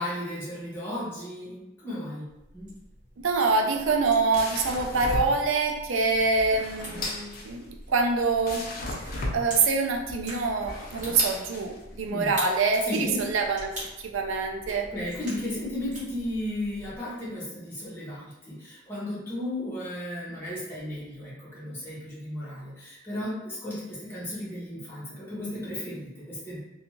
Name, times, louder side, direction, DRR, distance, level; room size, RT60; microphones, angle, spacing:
voice 1, 0.0-2.3 2.5-2.7 12.1-12.3 12.8-13.2 14.7-26.6, left 1 dB, 10° left, -10 dB, 0.9 m, -34 dB
sound 1, 2.3-17.0, right 1 dB, 40° right, 1.3 m, -45 dB
voice 2, 3.2-8.7 9.0-13.7 14.1-14.9, right 4 dB, 80° right, 3 dB, 0.4 m, -25 dB
sound 2, 3.8-12.1, left 1 dB, 50° left, 0.4 m, -36 dB
2.5 x 2.3 x 2.9 m, 0.98 s
head